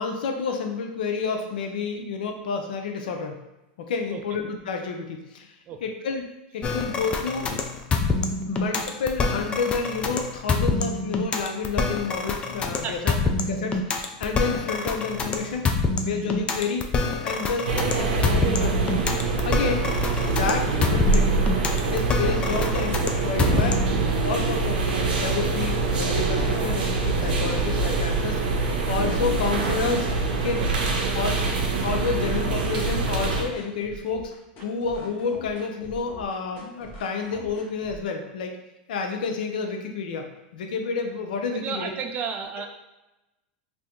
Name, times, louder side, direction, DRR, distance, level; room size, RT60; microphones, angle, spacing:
voice 1, 0.0-3.4 3.8-5.5 5.8-7.5 8.5-15.7 16.0-16.9 17.2-17.7 18.0-19.1 19.4-19.8 20.3-21.4 21.9-23.8 24.2-28.4 28.9-30.1 30.4-30.6 31.1-31.4 31.8-34.3 34.6-38.5 38.9-40.3 40.5-41.9, left 5 dB, 80° left, 4 dB, 0.6 m, -29 dB
sound 1, 6.6-24.0, left 4 dB, 20° left, 0.4 m, -26 dB
voice 2, 12.8-13.2 19.6-19.7 30.6-31.3 41.5-42.7, right 6 dB, 35° right, 5 dB, 0.5 m, -33 dB
sound 2, 17.6-33.4, right 3 dB, 85° right, 0.6 m, -24 dB
sound 3, 30.1-38.1, left 2 dB, 40° left, 0.9 m, -44 dB
2.8 x 2.6 x 3.6 m, 1.0 s
supercardioid pair, 125°, 5 cm